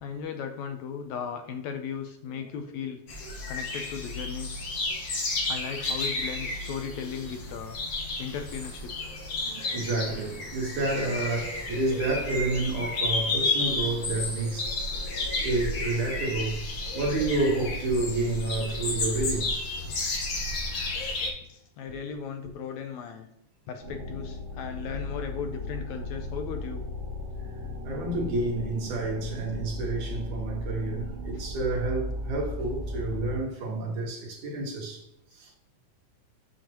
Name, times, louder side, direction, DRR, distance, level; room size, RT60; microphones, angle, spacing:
voice 1, 0.0-3.0 3.5-4.6 5.5-7.8 8.2-8.9 21.5-23.3 23.7-26.8, left 7 dB, 75° left, 1.8 m, -36 dB
sound 1, 3.1-21.3, left 2 dB, 50° left, 2.0 m, -32 dB
voice 2, 3.2-3.6 4.9-5.0 9.4-14.9 15.4-16.6 16.9-19.5 22.4-22.5 27.8-35.0 35.3-35.5, right 2 dB, 75° right, 2.8 m, -30 dB
sound 2, 23.8-33.4, left 1 dB, 45° right, 2.8 m, -36 dB
7.3 x 5.9 x 2.9 m
omnidirectional pair, 3.6 m